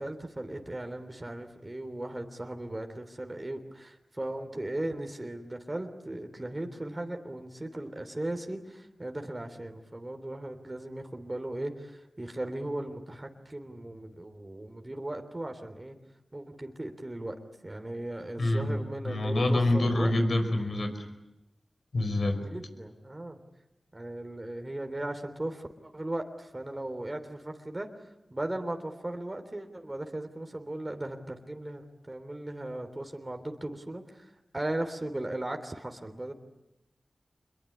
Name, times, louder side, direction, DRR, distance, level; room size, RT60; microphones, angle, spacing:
voice 1, 0.0-16.0 16.3-17.3 17.6-20.1 22.4-23.4 23.9-36.3, right 1 dB, 30° right, 5 dB, 3.4 m, -37 dB
voice 2, 18.4-18.8 19.0-20.9 21.9-22.4, left 1 dB, 70° left, 8 dB, 5.0 m, -26 dB
26.5 x 22.5 x 9.8 m, 0.90 s
cardioid pair, 40°, 0 cm